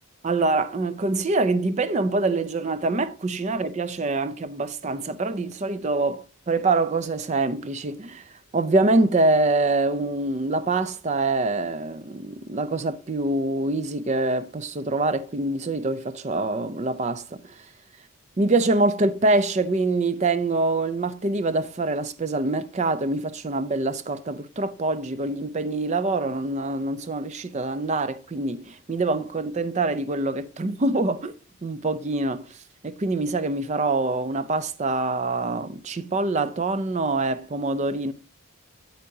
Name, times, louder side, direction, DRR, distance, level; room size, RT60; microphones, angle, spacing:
voice 1, 0.2-8.2 8.5-17.6 18.4-31.3 31.6-32.4 32.8-38.1, right 2 dB, 30° right, 0.4 m, -25 dB
8.4 x 7.9 x 2.7 m
head